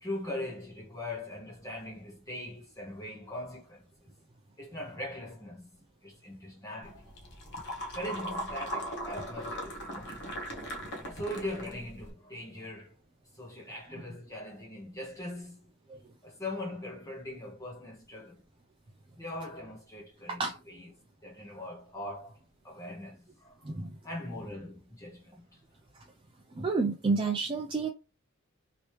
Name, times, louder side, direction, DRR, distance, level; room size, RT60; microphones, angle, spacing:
voice 1, 0.0-3.8 4.6-5.7 6.0-7.0 7.9-10.2 11.0-12.9 13.3-15.6 16.2-18.4 19.2-20.4 20.7-20.9 21.2-22.4 22.6-23.8 24.0-25.4, left 1 dB, 15° left, 0.8 m, -41 dB
sound 1, 6.8-12.1, equal, 55° left, 0.9 m, -39 dB
voice 2, 23.6-24.0 26.6-27.9, right 4 dB, 25° right, 0.4 m, -29 dB
3.0 x 3.0 x 3.1 m
head